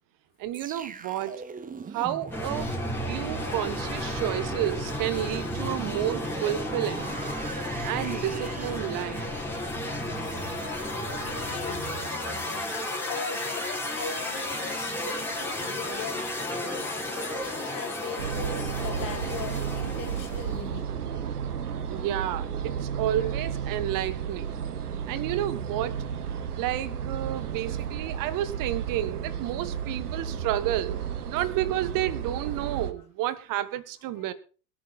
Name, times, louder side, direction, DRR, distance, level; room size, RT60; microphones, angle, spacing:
voice 1, 0.4-1.4 1.9-2.7 3.1-7.1 7.8-9.3 21.9-24.5 25.1-26.0 26.6-34.3, right 13 dB, 45° right, 15 dB, 1.6 m, -31 dB
sound 1, 0.5-11.6 12.0-12.2, right 5 dB, 20° right, 1.3 m, -41 dB
sound 2, 2.3-20.6, left 1 dB, 5° left, 4.7 m, -33 dB
voice 2, 11.2-11.9 12.4-21.6 22.0-22.1 23.2-23.3 24.8-25.1 27.7-28.6 29.5-29.7 34.2-34.3, left 5 dB, 40° left, 2 dB, 3.6 m, -41 dB
sound 3, 18.2-32.9, right 8 dB, 75° right, 1.5 m, -33 dB
22.5 x 9.0 x 4.2 m, 0.37 s
figure-of-eight pair, 80°, 46 cm